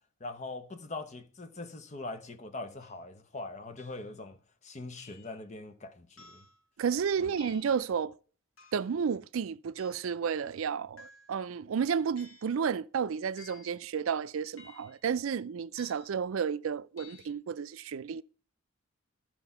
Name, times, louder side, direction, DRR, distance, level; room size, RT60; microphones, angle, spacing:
voice 1, 0.2-4.4 4.6-6.4 7.2-7.3, left 2 dB, 35° left, 0.8 m, -42 dB
sound 1, 2.8-3.0 3.8-4.2 5.0-5.4 6.2-6.6 7.4-7.8 8.6-9.0 9.8-10.1 11.0-11.5 12.2-12.6 13.4-13.8 14.6-15.1 15.8-16.2 17.0-17.3, left 4 dB, 75° left, 1.6 m, -55 dB
voice 2, 6.8-8.1 8.7-18.2, right 6 dB, 75° right, 0.4 m, -32 dB
13.0 x 4.4 x 5.6 m
head